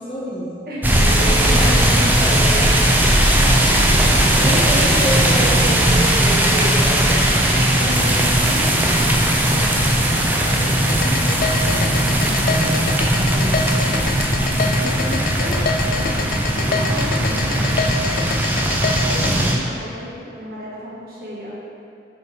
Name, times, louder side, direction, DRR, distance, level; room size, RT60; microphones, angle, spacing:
voice 1, 0.0-0.5 0.9-3.1 3.9-7.3 13.3-13.8 19.2-19.6, right 1 dB, 30° left, -7 dB, 1.5 m, -28 dB
voice 2, 0.7-2.1 7.4-9.0 9.5-12.6 14.7-18.2 19.0-21.6, equal, 55° right, -7 dB, 1.8 m, -34 dB
sound 1, 0.8-19.6, right 1 dB, 10° right, 0.5 m, -17 dB
sound 2, 10.9-19.3, left 5 dB, 50° left, 0.3 m, -25 dB
6.7 x 5.4 x 4.6 m, 2.6 s
head